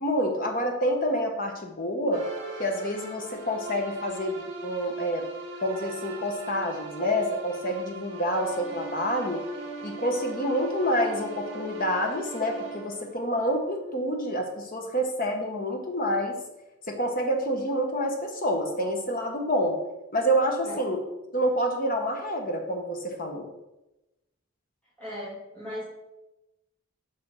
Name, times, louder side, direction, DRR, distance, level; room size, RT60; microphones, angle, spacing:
voice 1, 0.0-2.2 2.6-5.3 5.6-9.4 9.8-16.4 16.9-19.8 20.1-21.0 21.3-23.5, equal, 40° left, 2 dB, 1.2 m, -28 dB
sound 1, 2.1-13.9, right 3 dB, 55° right, 2.3 m, -40 dB
voice 2, 25.0-25.8, left 1 dB, 5° left, -11 dB, 2.2 m, -37 dB
9.0 x 5.7 x 3.8 m, 0.96 s
head